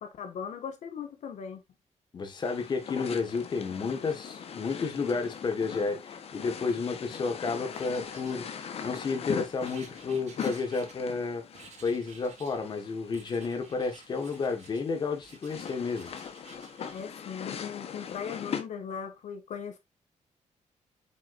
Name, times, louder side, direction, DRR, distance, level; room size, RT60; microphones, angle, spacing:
voice 1, 0.0-1.6 16.9-19.8, left 7 dB, 70° left, 1.8 m, -39 dB
voice 2, 2.1-8.4 8.8-11.4 11.8-16.1, left 4 dB, 35° left, 1.7 m, -31 dB
sound 1, 2.4-18.6, left 7 dB, 55° left, 1.2 m, -41 dB
Writing, 7.7-9.0 9.6-11.2 11.5-12.6 13.1-14.9 15.2-17.0, right 5 dB, 65° right, 3.3 m, -53 dB
7.9 x 6.1 x 2.6 m
wide cardioid pair, 170°, 12 cm